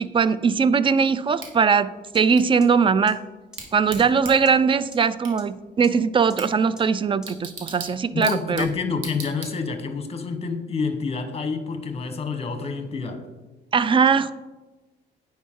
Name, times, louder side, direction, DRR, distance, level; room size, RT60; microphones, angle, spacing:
voice 1, 0.0-3.2 3.7-8.7 13.7-14.3, right 5 dB, 25° right, 16 dB, 0.3 m, -20 dB
Bicycle / Tick, 1.4-10.0, right 4 dB, 90° right, 1.4 m, -42 dB
sound 1, 2.1-2.2 2.6-2.7 3.1-3.2 3.5-3.6 4.0-4.1 4.5-4.6 4.9-5.0 5.4-5.5 5.8-5.9 6.3-6.4 6.8-6.9 7.2-7.3, left 1 dB, 5° right, 1.2 m, -44 dB
voice 2, 8.1-13.2, left 4 dB, 30° left, 8 dB, 1.0 m, -28 dB
9.4 x 4.7 x 3.6 m, 1.2 s
cardioid pair, 90°, 20 cm